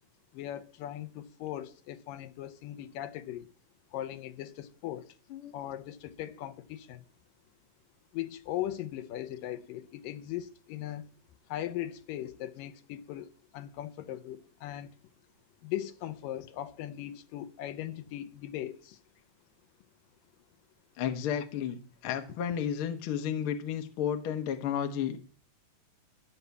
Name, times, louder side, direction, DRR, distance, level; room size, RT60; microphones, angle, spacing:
voice 1, 0.3-3.5 3.9-5.1 5.5-7.0 8.1-11.0 11.5-13.3 13.5-14.9 15.6-19.0, left 12 dB, 80° left, 2.4 m, -39 dB
voice 2, 21.0-25.2, left 9 dB, 60° left, 1.5 m, -32 dB
13.5 x 5.7 x 8.2 m
omnidirectional pair, 4.1 m